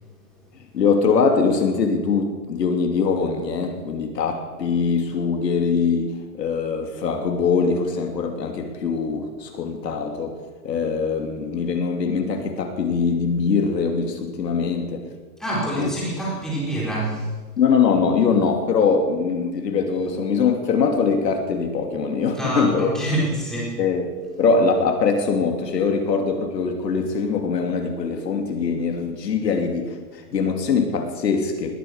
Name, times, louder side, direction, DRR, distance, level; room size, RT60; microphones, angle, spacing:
voice 1, 0.7-10.4 10.6-15.1 15.8-15.9 17.6-22.9 23.8-24.1 24.4-31.8, left 5 dB, 80° left, 4 dB, 3.0 m, -22 dB
voice 2, 15.4-17.3 22.3-23.8, right 1 dB, ahead, -6 dB, 4.0 m, -26 dB
20.0 x 9.2 x 6.7 m, 1.3 s
hypercardioid pair, 160°, 49 cm